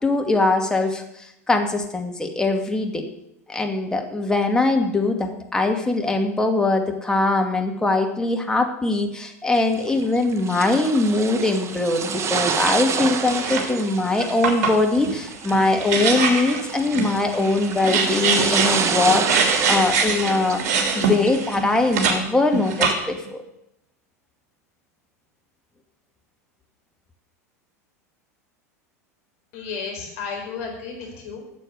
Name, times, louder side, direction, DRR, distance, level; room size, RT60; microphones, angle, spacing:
voice 1, 0.0-3.1 3.5-20.6 20.9-23.4, left 2 dB, 10° left, 3 dB, 2.3 m, -22 dB
sound 1, 9.6-21.5, right 6 dB, 35° right, 1.4 m, -29 dB
sound 2, 13.2-13.8 14.2-22.2 22.5-23.3, right 5 dB, 55° right, 3.2 m, -24 dB
voice 2, 29.5-31.4, left 5 dB, 60° left, 1 dB, 4.9 m, -33 dB
13.0 x 7.7 x 8.0 m, 0.81 s
hypercardioid pair, 85°, 9 cm